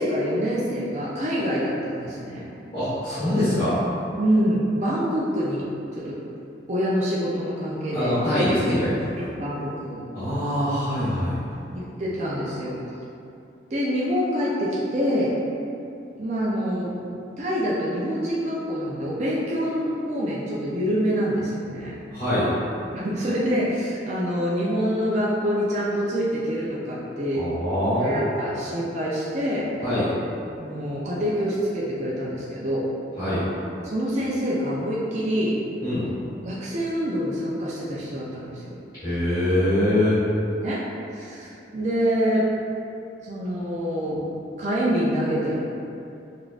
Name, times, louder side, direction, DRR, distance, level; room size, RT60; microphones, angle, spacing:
voice 1, 0.0-2.5 4.2-5.6 5.9-6.2 6.7-8.1 9.2-10.0 11.7-12.7 13.7-15.3 16.2-16.9 17.4-22.0 22.9-27.5 28.0-29.7 30.6-32.9 33.8-35.6 36.5-38.8 40.6-40.8 41.1-42.5 43.2-44.2 44.6-45.6, equal, 40° right, -7 dB, 0.4 m, -26 dB
voice 2, 2.7-3.8 7.9-9.2 10.1-11.4 22.1-22.5 27.3-28.3 29.8-30.1 33.2-33.4 35.8-36.1 39.0-40.2, left 1 dB, 25° left, -17 dB, 1.3 m, -23 dB
5.0 x 2.4 x 2.4 m, 2.7 s
head